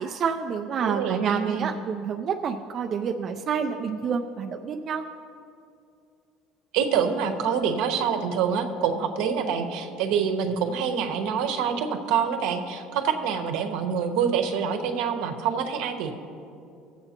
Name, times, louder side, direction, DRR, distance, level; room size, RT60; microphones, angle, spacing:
voice 1, 0.0-5.0, right 6 dB, 35° right, 4 dB, 0.4 m, -28 dB
voice 2, 0.8-1.7 6.7-16.1, right 7 dB, 75° right, 6 dB, 0.9 m, -26 dB
19.0 x 7.8 x 2.9 m, 2.6 s
cardioid pair, 155°, 0 cm